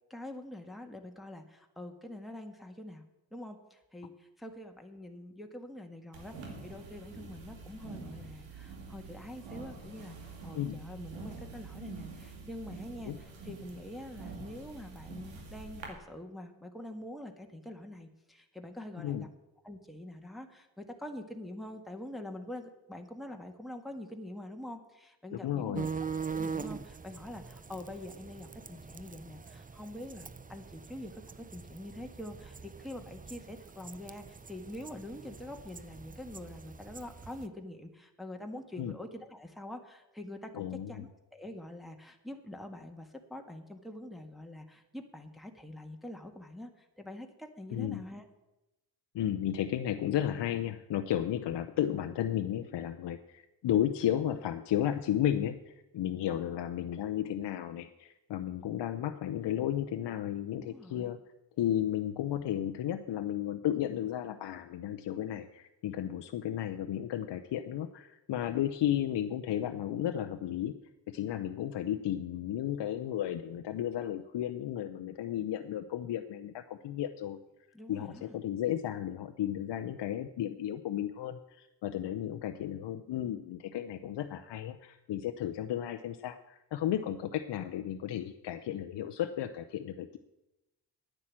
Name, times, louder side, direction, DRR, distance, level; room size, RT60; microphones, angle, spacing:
voice 1, 0.1-3.0 3.3-19.3 19.6-48.3 60.6-61.1 77.7-78.4, left 1 dB, ahead, 3 dB, 1.7 m, -45 dB
sound 1, 6.1-15.9, right 3 dB, 85° right, 2.1 m, -46 dB
voice 2, 10.5-10.9 13.0-13.2 19.0-19.3 25.3-25.9 38.8-38.9 40.5-41.0 47.7-48.0 49.1-61.2 61.6-70.8 71.1-77.4 77.9-90.2, left 11 dB, 65° left, 8 dB, 0.8 m, -33 dB
sound 2, 25.7-37.5, right 5 dB, 20° right, 0.6 m, -43 dB
9.6 x 9.1 x 7.4 m, 0.97 s
supercardioid pair, 45°, 44 cm